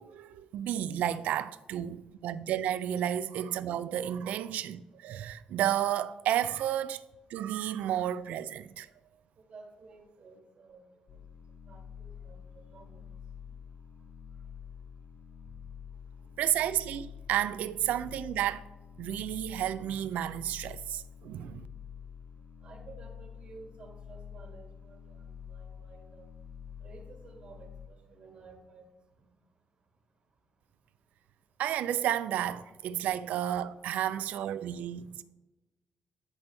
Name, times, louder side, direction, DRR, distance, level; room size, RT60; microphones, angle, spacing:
voice 1, 0.0-7.0 7.3-8.9 16.4-18.7 19.0-21.7 31.6-35.2, right 11 dB, 85° right, 0.4 m, -32 dB
voice 2, 9.4-11.2 11.7-13.1 13.4-13.6 22.6-26.3 26.8-28.9, right 3 dB, 60° right, 1.8 m, -53 dB
sound 1, 11.1-27.9, left 7 dB, 55° left, 0.5 m, -48 dB
10.5 x 5.3 x 3.4 m
cardioid pair, 85°, 3 cm